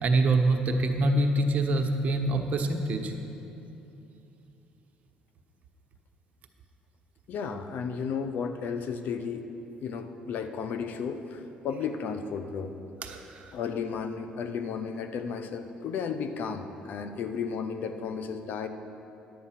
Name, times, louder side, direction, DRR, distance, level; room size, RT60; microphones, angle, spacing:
voice 1, 0.0-3.1 13.0-13.4, right 2 dB, 50° right, 4 dB, 1.1 m, -25 dB
voice 2, 7.3-9.4 9.8-12.7 13.5-18.7, left 6 dB, 65° left, 8 dB, 0.7 m, -33 dB
10.5 x 8.7 x 5.8 m, 3.0 s
supercardioid pair, 85°, 3 cm